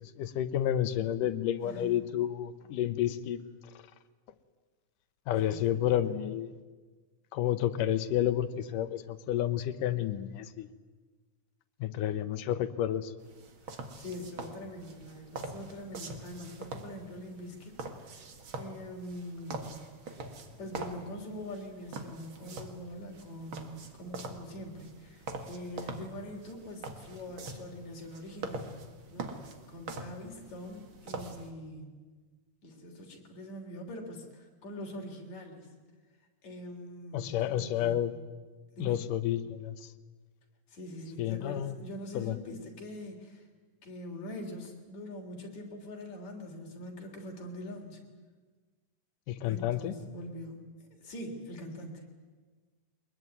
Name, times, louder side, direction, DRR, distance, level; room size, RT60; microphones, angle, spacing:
voice 1, 0.0-3.4 5.3-6.5 7.3-10.7 11.8-13.1 37.1-38.1 38.8-39.8 41.2-41.8 42.1-42.4 49.3-49.9, left 11 dB, 80° left, 11 dB, 2.6 m, -30 dB
voice 2, 1.6-2.0 5.4-6.1 14.0-17.7 18.5-20.3 20.6-28.7 29.1-29.3 29.7-32.0 32.6-35.7 36.4-38.1 38.7-39.0 40.7-43.4 43.8-48.0 49.4-50.7 51.0-52.0, left 1 dB, 60° left, 2 dB, 4.7 m, -43 dB
sound 1, 13.2-31.5, right 3 dB, 45° right, 2.2 m, -44 dB
23.0 x 21.0 x 9.5 m, 1.4 s
omnidirectional pair, 3.8 m